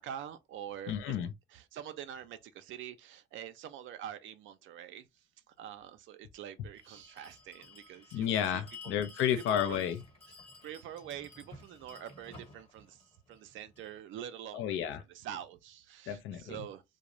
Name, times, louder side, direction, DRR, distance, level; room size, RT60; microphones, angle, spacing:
voice 1, 0.0-1.2 1.5-8.6 9.5-9.8 10.6-14.6 15.1-16.8, right 10 dB, 75° right, 0.4 m, -45 dB
voice 2, 0.9-1.3 8.1-10.0 14.5-15.0 16.1-16.6, left 9 dB, 80° left, 0.4 m, -31 dB
Bell, 6.7-14.0, left 3 dB, 30° left, 1.0 m, -53 dB
2.4 x 2.0 x 2.9 m
cardioid pair, 90°, 20 cm